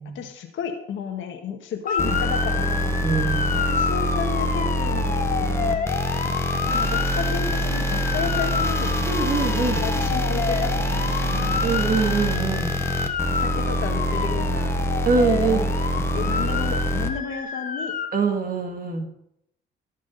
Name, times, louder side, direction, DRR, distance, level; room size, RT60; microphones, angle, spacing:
voice 1, 0.2-3.0 3.5-5.9 6.2-9.0 9.8-11.7 13.1-14.8 15.5-15.7 16.1-17.9, left 7 dB, 75° left, 4 dB, 1.8 m, -32 dB
Motor vehicle (road) / Siren, 1.9-18.1, left 5 dB, 40° left, 1.3 m, -29 dB
sound 1, 2.0-17.1, equal, 15° left, 1.3 m, -25 dB
voice 2, 3.0-3.6 9.1-9.8 11.6-12.7 15.1-15.6 18.1-19.0, right 4 dB, 45° right, 3 dB, 2.2 m, -24 dB
18.5 x 6.2 x 4.1 m, 0.74 s
cardioid pair, 90°, 20 cm